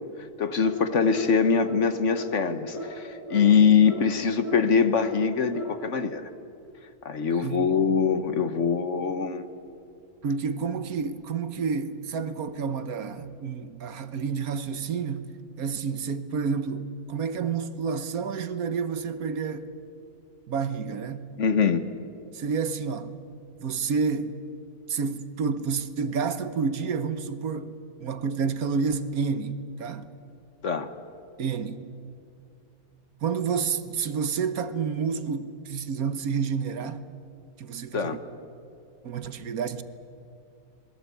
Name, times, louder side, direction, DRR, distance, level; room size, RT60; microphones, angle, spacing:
voice 1, 0.4-6.3 7.0-9.4 21.4-21.8 30.6-30.9 37.9-38.2, left 6 dB, 55° left, 1.4 m, -23 dB
sound 1, 0.6-0.8 1.1-1.3 1.6-1.8 2.1-2.3 2.7-2.9 3.3-3.4 3.8-4.0 4.4-4.6 5.0-5.1 5.5-5.7, left 1 dB, 20° left, 6.2 m, -35 dB
voice 2, 7.3-7.9 10.2-15.3 15.6-19.7 20.5-21.4 22.3-23.1 23.6-24.4 24.9-27.7 28.0-30.1 31.4-31.8 33.2-37.0 37.6-38.2 39.0-39.8, right 5 dB, 70° right, 1.5 m, -29 dB
27.0 x 21.0 x 8.3 m
omnidirectional pair, 1.6 m